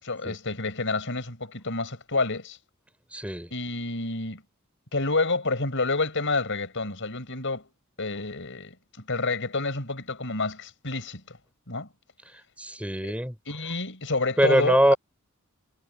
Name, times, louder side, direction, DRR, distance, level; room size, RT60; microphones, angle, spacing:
voice 1, 0.0-2.6 3.5-4.4 4.9-7.6 8.0-11.4 11.7-11.9 13.0-13.1 13.5-15.0, left 3 dB, 60° left, 6.8 m, -29 dB
voice 2, 3.1-3.5 12.6-13.4 14.4-14.9, right 1 dB, 5° right, 5.3 m, -22 dB
head